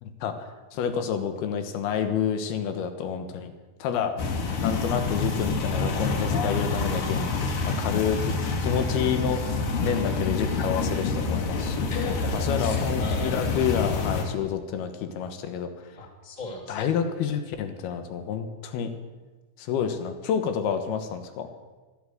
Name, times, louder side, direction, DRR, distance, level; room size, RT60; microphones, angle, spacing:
voice 1, 0.0-3.5 3.8-4.1 4.6-7.3 7.6-8.3 8.6-11.9 12.3-15.7 16.7-18.9 19.6-21.5, left 7 dB, 85° left, 8 dB, 3.2 m, -29 dB
sound 1, 4.2-14.2, left 4 dB, 65° left, 3.3 m, -27 dB
voice 2, 11.9-13.4 16.0-16.8, left 1 dB, 15° left, 2 dB, 1.8 m, -38 dB
15.5 x 11.5 x 7.8 m, 1.2 s
omnidirectional pair, 4.4 m